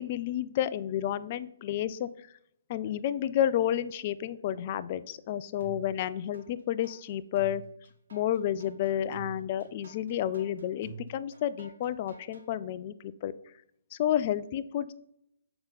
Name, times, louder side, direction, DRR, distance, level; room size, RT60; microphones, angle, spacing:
voice 1, 0.0-2.1 2.7-7.6 8.1-13.3 13.9-14.9, left 11 dB, 40° left, 15 dB, 0.4 m, -30 dB
sound 1, 5.6-6.4 6.8-12.5, right 4 dB, 70° right, 1.3 m, -47 dB
6.7 x 5.4 x 4.0 m, 0.75 s
figure-of-eight pair, 135°, 0 cm